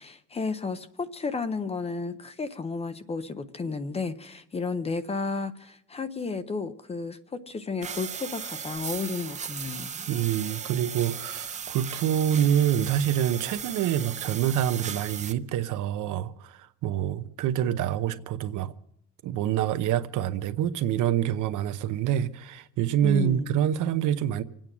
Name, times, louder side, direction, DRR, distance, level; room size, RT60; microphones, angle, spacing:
voice 1, 0.0-9.9 23.0-23.6, left 4 dB, 20° left, 0.6 m, -32 dB
sound 1, 7.8-15.3, right 7 dB, 25° right, 0.5 m, -37 dB
voice 2, 10.1-18.7 19.2-24.4, right 10 dB, 75° right, 0.9 m, -26 dB
26.0 x 9.0 x 6.0 m
cardioid pair, 180°, 31 cm